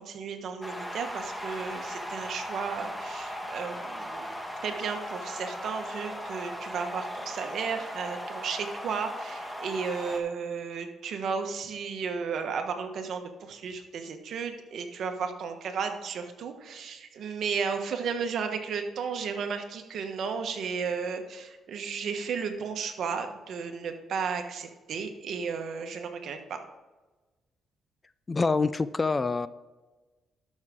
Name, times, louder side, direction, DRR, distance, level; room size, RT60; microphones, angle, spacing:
voice 1, 0.0-4.4 4.6-26.6, right 6 dB, 65° right, 6 dB, 1.3 m, -34 dB
sound 1, 0.6-10.2, equal, 5° left, 1.3 m, -38 dB
voice 2, 28.3-29.5, left 4 dB, 25° left, 15 dB, 0.4 m, -26 dB
12.5 x 6.3 x 3.7 m, 1.2 s
cardioid pair, 90°, 0 cm